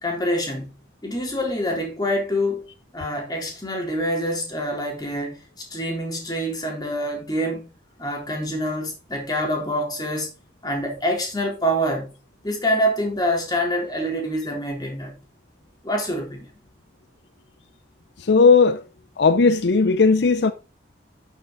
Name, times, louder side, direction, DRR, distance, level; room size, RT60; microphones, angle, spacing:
voice 1, 0.0-2.6 2.9-7.7 8.0-10.3 10.6-12.1 12.4-15.2 15.8-16.5, equal, 20° left, 3.7 m, -26 dB
voice 2, 18.2-18.8 19.2-20.5, left 4 dB, 70° left, 0.6 m, -16 dB
12.0 x 6.6 x 4.0 m
head